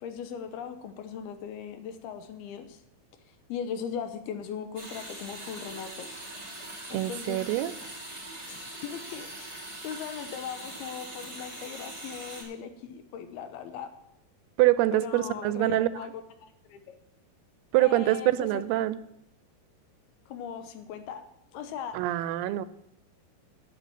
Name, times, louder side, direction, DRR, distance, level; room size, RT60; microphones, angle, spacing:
voice 1, 0.0-2.8 3.5-6.1 6.9-7.4 8.5-13.9 14.9-17.0 17.8-18.6 20.3-21.2 21.5-22.0, left 7 dB, 85° left, 9 dB, 3.0 m, -39 dB
sound 1, 4.7-12.4, right 1 dB, 10° right, 4.7 m, -42 dB
voice 2, 6.9-7.7 14.6-15.9 17.7-19.0 21.9-22.7, right 15 dB, 90° right, 15 dB, 2.6 m, -25 dB
10.5 x 6.8 x 9.0 m, 0.78 s
omnidirectional pair, 4.4 m